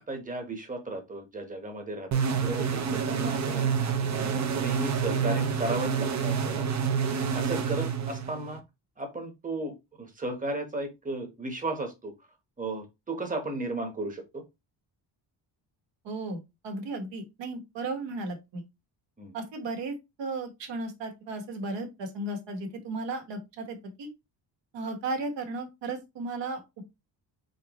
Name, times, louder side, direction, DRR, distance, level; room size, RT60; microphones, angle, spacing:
voice 1, 0.0-3.8 4.1-6.7 7.3-8.6 9.0-12.1 12.6-14.4 19.2-19.3, right 2 dB, 20° right, 4 dB, 1.0 m, -35 dB
sound 1, 2.1-8.6, right 6 dB, 40° right, 0.7 m, -28 dB
voice 2, 16.0-18.6 19.3-24.1 24.7-26.6, right 2 dB, 75° right, 4 dB, 1.5 m, -35 dB
4.2 x 4.0 x 3.0 m, 0.23 s
cardioid pair, 145°, 43 cm